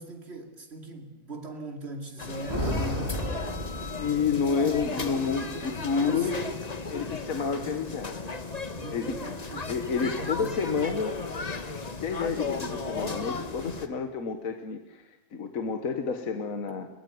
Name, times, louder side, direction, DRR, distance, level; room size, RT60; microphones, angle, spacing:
voice 1, 0.0-3.7 4.1-6.6 7.6-7.8 8.7-9.8 10.2-10.9, right 2 dB, 50° right, 2.9 m, -40 dB
sound 1, 2.2-13.9, left 4 dB, 30° left, 1.3 m, -35 dB
sound 2, 2.5-4.6, equal, 30° right, 5.1 m, -32 dB
voice 2, 4.0-6.4 6.9-8.2 8.9-9.2 9.7-11.1 11.7-16.9, left 5 dB, 80° left, 1.7 m, -30 dB
21.5 x 19.0 x 9.4 m
omnidirectional pair, 1.4 m